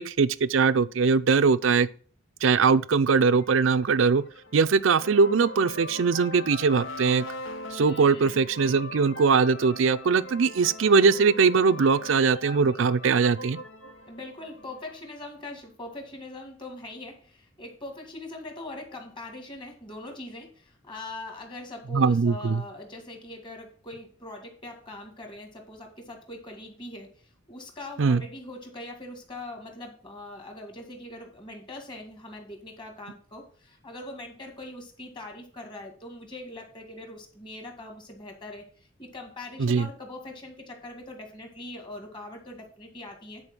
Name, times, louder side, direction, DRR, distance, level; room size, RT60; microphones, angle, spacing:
voice 1, 0.0-1.9 2.4-4.2 4.5-7.2 7.7-13.6 21.9-22.6 28.0-28.2 39.6-39.9, right 5 dB, 75° right, 0.5 m, -21 dB
sound 1, 3.3-15.1, left 1 dB, 80° left, 1.2 m, -41 dB
voice 2, 7.8-8.4 14.0-27.1 27.5-43.4, left 2 dB, 25° left, 2.0 m, -42 dB
9.9 x 4.5 x 6.1 m
head